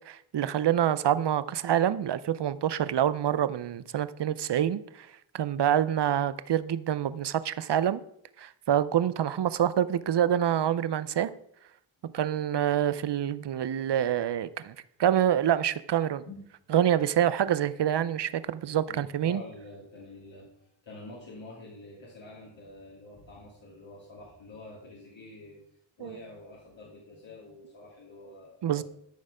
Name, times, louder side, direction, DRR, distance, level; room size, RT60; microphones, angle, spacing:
voice 1, 0.1-5.1 5.3-8.0 8.4-11.3 12.1-14.7 15.0-16.2 16.7-19.4 26.0-26.2 28.6-28.8, right 10 dB, 60° right, 16 dB, 0.6 m, -26 dB
voice 2, 12.0-12.5 16.3-16.4 18.9-25.6 26.0-28.8, left 2 dB, 70° left, -5 dB, 2.8 m, -47 dB
13.0 x 6.6 x 4.9 m, 0.73 s
wide cardioid pair, 160°, 47 cm